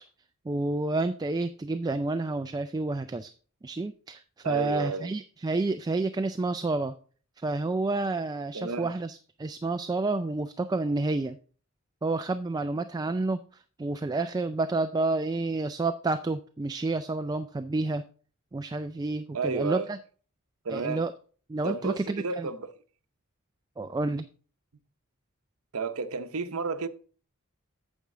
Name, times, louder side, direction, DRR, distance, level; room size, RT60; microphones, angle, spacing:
voice 1, 0.5-3.3 3.6-6.9 7.4-11.4 12.0-18.0 18.5-20.0 20.7-21.1 21.5-22.5 23.8-24.3, right 2 dB, 20° right, 0.3 m, -29 dB
voice 2, 4.4-5.1 8.5-8.9 19.3-19.9 20.6-21.0 21.6-22.7 25.7-26.9, right 4 dB, 80° right, 0.8 m, -31 dB
8.7 x 7.4 x 3.7 m
head